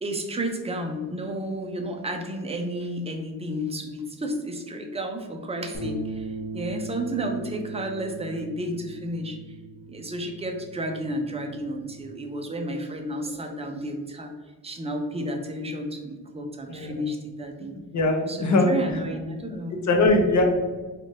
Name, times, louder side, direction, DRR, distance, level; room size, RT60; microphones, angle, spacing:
voice 1, 0.0-9.4 9.9-14.3 14.6-17.7 18.3-19.9, right 1 dB, 15° right, 3 dB, 0.5 m, -32 dB
sound 1, 5.7-12.0, right 3 dB, 85° left, 1.1 m, -38 dB
voice 2, 17.9-18.7 19.9-20.4, left 2 dB, 45° left, 3 dB, 0.8 m, -20 dB
3.5 x 2.5 x 3.9 m, 1.3 s
cardioid pair, 110°, 40 cm